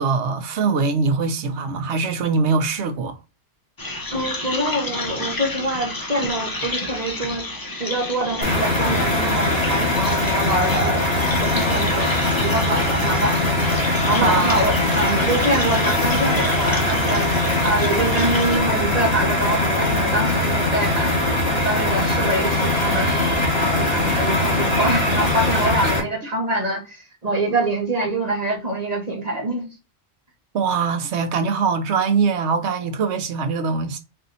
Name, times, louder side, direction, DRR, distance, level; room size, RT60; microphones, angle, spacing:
voice 1, 0.0-3.2 14.2-14.6 30.5-34.0, right 5 dB, 75° right, 1.0 m, -22 dB
sound 1, 3.8-18.6, left 2 dB, 25° left, 0.6 m, -31 dB
voice 2, 4.1-11.1 11.4-13.4 14.0-17.3 17.6-23.1 23.6-29.7, right 1 dB, 35° right, 1.2 m, -25 dB
sound 2, 8.4-26.0, left 1 dB, 60° left, 2.3 m, -21 dB
4.2 x 2.7 x 3.9 m
omnidirectional pair, 1.2 m